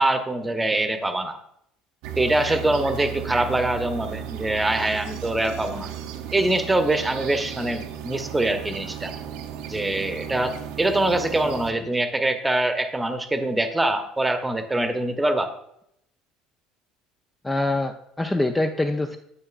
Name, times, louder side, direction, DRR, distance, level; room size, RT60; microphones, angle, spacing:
voice 1, 0.0-1.4 2.2-5.9 6.3-9.1 9.7-15.5, right 2 dB, 10° right, 8 dB, 1.0 m, -24 dB
sound 1, 2.0-11.7, right 9 dB, 60° right, 0.7 m, -35 dB
voice 2, 17.4-19.2, left 2 dB, 15° left, 5 dB, 0.5 m, -24 dB
9.6 x 8.4 x 2.5 m, 0.75 s
figure-of-eight pair, 65°, 0 cm